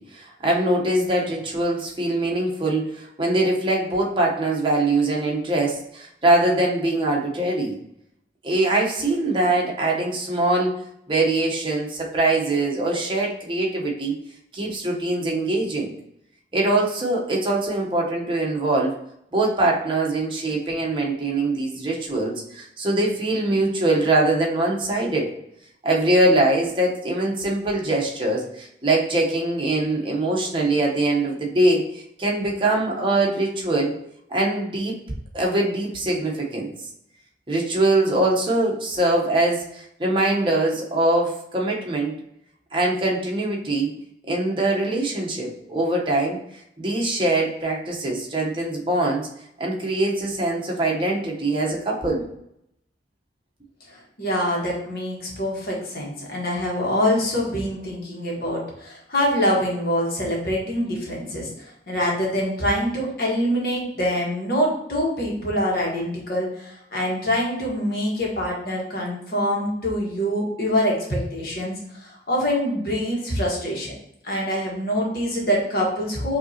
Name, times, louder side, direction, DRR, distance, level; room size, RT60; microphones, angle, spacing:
voice 1, 0.0-7.8 8.4-10.8 11.1-14.1 14.5-15.9 16.5-19.0 19.3-25.3 25.8-33.9 34.3-35.0 35.3-36.7 37.5-42.1 42.7-43.9 44.3-49.3 49.6-52.2, right 2 dB, 30° right, -2 dB, 0.9 m, -23 dB
voice 2, 53.9-73.9 74.2-76.4, equal, 55° left, -2 dB, 1.4 m, -25 dB
5.4 x 2.8 x 2.8 m, 0.76 s
head